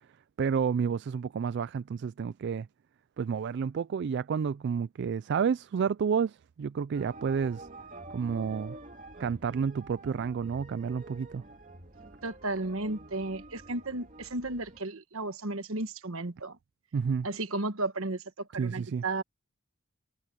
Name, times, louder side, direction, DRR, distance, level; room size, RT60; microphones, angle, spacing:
voice 1, 0.4-2.7 3.2-7.7 8.1-8.8 9.2-11.4 16.9-17.3 18.6-19.0, right 6 dB, 50° right, 0.3 m, -30 dB
sound 1, 6.9-14.8, right 2 dB, 35° right, 2.9 m, -48 dB
voice 2, 12.2-16.6 17.2-19.2, right 2 dB, 70° right, 1.3 m, -34 dB
head